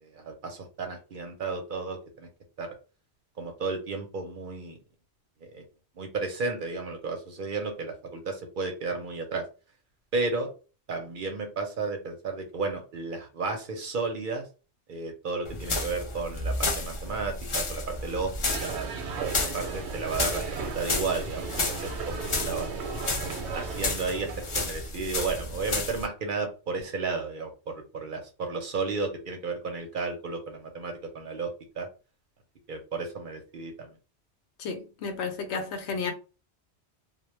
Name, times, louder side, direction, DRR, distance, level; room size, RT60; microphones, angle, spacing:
voice 1, 0.0-2.3 2.6-2.7 3.4-4.8 5.4-5.6 6.0-9.4 10.1-10.5 10.9-14.4 14.9-18.3 18.6-22.7 23.5-24.3 24.5-31.5 31.8-31.9 32.7-33.9, right 4 dB, 60° right, 0.7 m, -33 dB
sound 1, 15.4-26.1, left 2 dB, 40° left, 0.4 m, -32 dB
sound 2, 18.5-24.7, right 5 dB, 85° right, 0.9 m, -36 dB
voice 2, 34.6-36.1, left 5 dB, 85° left, 0.9 m, -32 dB
2.1 x 2.1 x 3.0 m
omnidirectional pair, 1.1 m